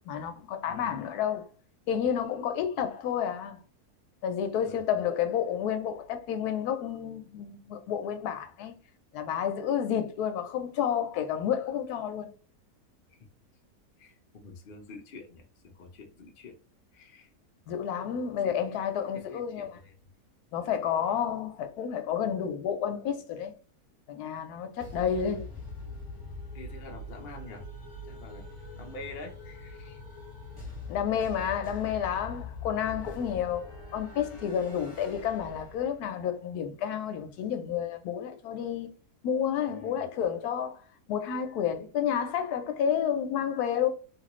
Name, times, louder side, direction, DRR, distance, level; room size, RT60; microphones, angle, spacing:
voice 1, 0.1-1.5 1.9-3.6 4.2-8.7 9.1-12.3 17.7-19.8 20.5-23.5 24.1-25.5 30.9-38.9 39.2-43.9, left 8 dB, 85° left, 1.1 m, -30 dB
voice 2, 14.0-16.6 16.9-17.3 18.4-18.6 19.1-19.9 24.8-24.9 26.5-27.7 28.0-30.0 39.7-40.0, left 3 dB, 55° left, 0.6 m, -47 dB
sound 1, 24.8-36.2, left 2 dB, 15° left, 1.2 m, -43 dB
3.0 x 2.5 x 3.0 m
omnidirectional pair, 1.6 m